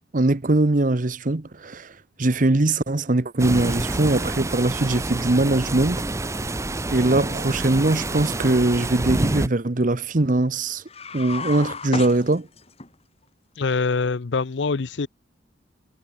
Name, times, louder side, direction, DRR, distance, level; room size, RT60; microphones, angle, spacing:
voice 1, 0.1-1.9 2.2-6.0 6.9-10.8 11.1-12.5, right 2 dB, 45° right, 0.9 m, -21 dB
sound 1, 3.4-9.5, right 2 dB, 15° right, 0.7 m, -27 dB
sound 2, 10.9-12.9, left 4 dB, 35° left, 2.9 m, -33 dB
voice 2, 13.6-15.1, left 4 dB, 70° left, 0.6 m, -24 dB
head